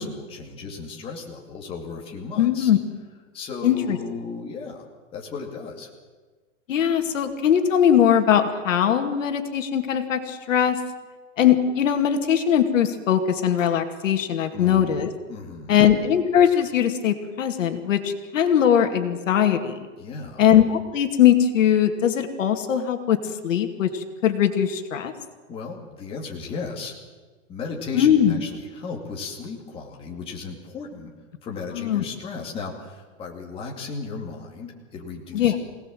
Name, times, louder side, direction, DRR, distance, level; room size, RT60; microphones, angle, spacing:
voice 1, 0.0-2.7 3.3-4.9 5.1-5.9 14.5-15.8 20.0-20.5 25.5-27.0 27.5-31.1 31.4-35.6, left 4 dB, 15° left, -1 dB, 2.4 m, -35 dB
voice 2, 2.4-2.8 3.6-4.0 6.7-10.8 11.4-15.1 15.7-19.9 20.4-23.2 23.4-25.1 27.9-28.4 31.7-32.0 35.3-35.6, left 9 dB, 70° left, 6 dB, 2.3 m, -20 dB
24.5 x 18.0 x 7.6 m, 1.4 s
supercardioid pair, 175°, 40 cm